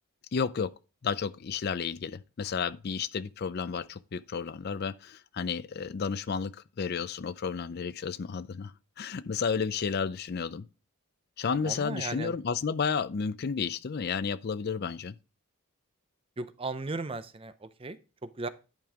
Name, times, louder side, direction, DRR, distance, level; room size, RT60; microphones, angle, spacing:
voice 1, 0.3-0.8 1.0-10.6 11.4-15.1, left 6 dB, 45° left, 0.4 m, -32 dB
voice 2, 11.6-12.4 16.4-18.5, right 3 dB, 25° right, 0.5 m, -37 dB
10.5 x 5.2 x 3.6 m
head